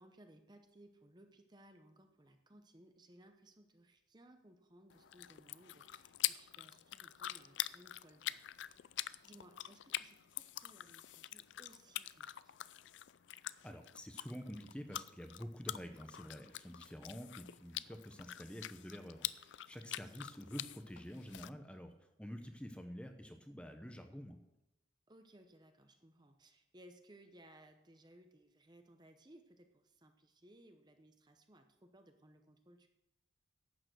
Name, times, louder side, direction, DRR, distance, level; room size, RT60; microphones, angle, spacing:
voice 1, 0.0-8.9 9.2-12.6 19.9-20.3 25.1-32.9, right 1 dB, 20° right, 6 dB, 0.8 m, -62 dB
sound 1, 4.9-21.5, left 14 dB, 65° left, 0.4 m, -45 dB
voice 2, 13.6-24.4, equal, 5° left, 6 dB, 0.9 m, -48 dB
11.5 x 8.8 x 6.3 m, 0.94 s
head